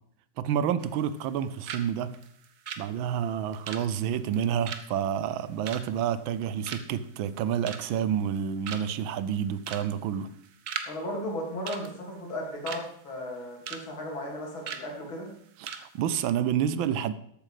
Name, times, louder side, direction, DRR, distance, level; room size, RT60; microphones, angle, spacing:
voice 1, 0.4-2.2 2.8-10.3 15.6-17.1, right 9 dB, 80° right, 1.5 m, -29 dB
sound 1, 0.8-1.4 1.7-6.4 6.7-7.0 7.4-8.0 8.4-8.5 8.7-9.1 9.6-9.9 10.1-10.9 11.2-11.3 11.7-12.9 13.2-13.8 14.1-14.3 14.6-14.9 15.3-15.4 15.7-15.9 16.1-16.3, right 7 dB, 60° right, 1.3 m, -38 dB
voice 2, 10.9-15.3, left 1 dB, 85° left, 3.8 m, -35 dB
13.0 x 8.5 x 5.0 m
omnidirectional pair, 2.1 m